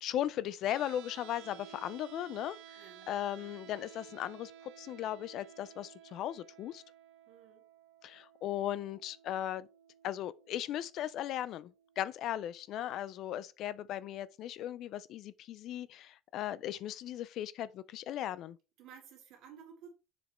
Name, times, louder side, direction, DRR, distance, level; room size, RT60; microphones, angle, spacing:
voice 1, 0.0-6.8 8.0-9.7 10.0-11.7 12.0-18.6, left 12 dB, 45° left, 0.3 m, -37 dB
sound 1, 0.7-12.7, right 10 dB, 85° right, 1.0 m, -55 dB
voice 2, 2.8-3.6 7.3-7.7 18.8-19.9, right 7 dB, 50° right, 2.6 m, -55 dB
7.0 x 5.1 x 3.1 m
cardioid pair, 170°, 0 cm